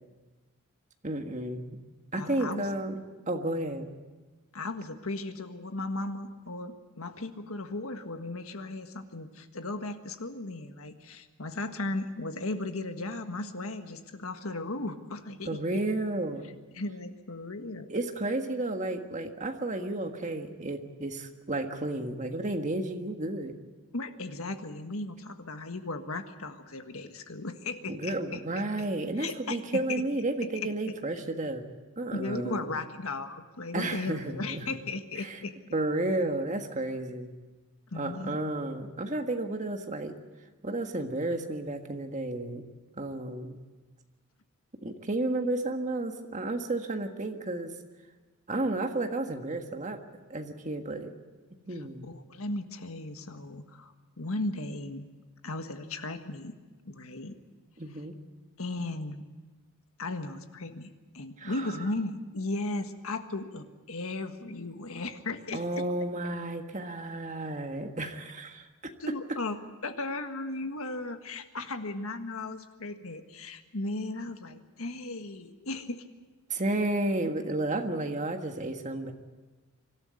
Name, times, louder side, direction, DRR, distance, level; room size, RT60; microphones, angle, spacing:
voice 1, 1.0-1.8 2.1-3.9 15.4-16.4 17.9-23.5 27.9-31.6 32.0-32.7 33.7-34.7 35.2-35.4 35.7-37.3 37.9-40.1 40.6-42.6 42.9-43.6 44.8-47.7 48.5-50.0 50.3-51.1 51.7-52.1 57.8-58.2 61.4-61.7 65.5-68.7 76.5-79.1, right 2 dB, 35° right, 5 dB, 1.6 m, -32 dB
voice 2, 2.1-2.7 4.5-15.6 16.7-17.9 23.9-28.4 28.8-28.9 29.2-30.0 30.5-30.7 32.1-35.5 37.9-38.4 52.0-55.0 55.4-56.5 56.8-57.4 58.6-59.2 60.0-65.8 69.0-76.0, left 2 dB, 80° left, 7 dB, 1.6 m, -36 dB
24.5 x 13.0 x 9.6 m, 1.3 s
head